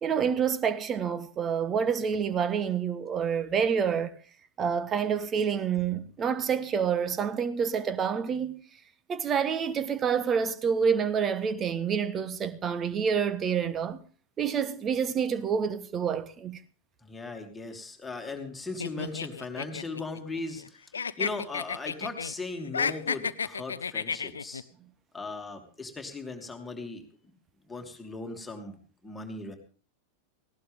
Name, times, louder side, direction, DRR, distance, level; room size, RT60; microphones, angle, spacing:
voice 1, 0.0-4.2 4.6-8.6 9.1-14.0 14.4-16.6, right 7 dB, 25° right, 1.4 m, -28 dB
voice 2, 17.0-20.8 21.2-24.6 25.1-27.0 27.7-28.8 29.0-29.6, left 3 dB, 10° left, 2.9 m, -38 dB
sound 1, 18.8-20.7 20.9-22.3 22.6-24.6, left 6 dB, 70° left, 0.7 m, -32 dB
18.5 x 17.5 x 3.7 m
figure-of-eight pair, 90°, 0 cm